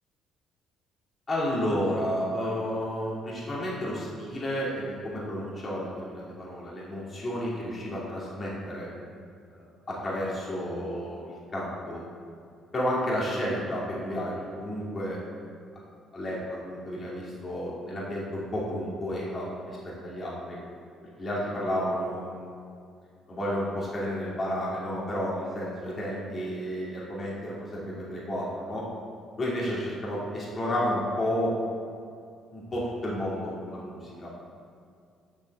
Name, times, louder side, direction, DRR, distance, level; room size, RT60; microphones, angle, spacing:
voice 1, 1.3-8.9 9.5-12.0 12.7-15.2 16.1-20.6 21.2-22.5 23.3-28.8 29.4-31.6 32.5-34.3, equal, 30° left, -6 dB, 2.5 m, -31 dB
6.6 x 6.1 x 7.4 m, 2.3 s
cardioid pair, 115°, 0 cm